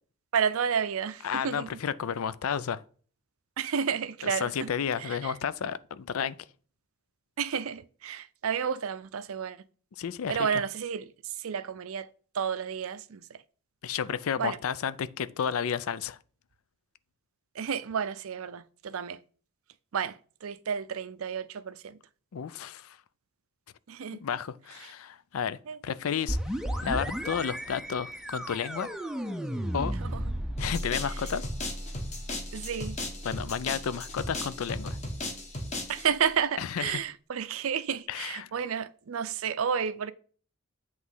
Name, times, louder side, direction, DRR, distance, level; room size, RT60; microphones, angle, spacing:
voice 1, 0.3-1.7 3.6-4.7 5.0-5.3 7.4-9.6 10.3-12.1 12.3-13.4 14.4-14.6 17.5-19.2 19.9-22.0 23.9-24.2 24.8-24.9 25.7-25.8 30.0-30.2 32.5-33.0 35.9-40.1, right 7 dB, 75° right, 0.5 m, -31 dB
voice 2, 1.2-2.8 4.2-6.4 10.0-10.3 13.8-16.2 22.3-23.0 24.2-28.9 29.7-29.9 30.6-31.5 33.2-35.0 36.6-37.0 38.1-38.5, left 7 dB, 75° left, 0.4 m, -32 dB
sound 1, 26.3-35.8, equal, 5° right, 0.5 m, -36 dB
sound 2, 30.6-36.1, left 2 dB, 30° left, 1.4 m, -37 dB
8.2 x 3.1 x 5.4 m
head